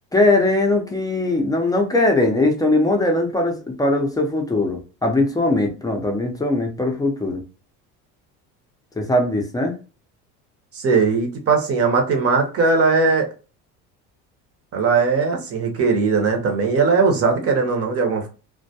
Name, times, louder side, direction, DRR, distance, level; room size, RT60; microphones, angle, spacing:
voice 1, 0.1-7.4 9.0-9.7, left 2 dB, 10° left, 2 dB, 0.5 m, -20 dB
voice 2, 10.7-13.3 14.7-18.3, right 4 dB, 40° right, 3 dB, 0.8 m, -19 dB
2.2 x 2.1 x 2.7 m, 0.33 s
supercardioid pair, 105°, 38 cm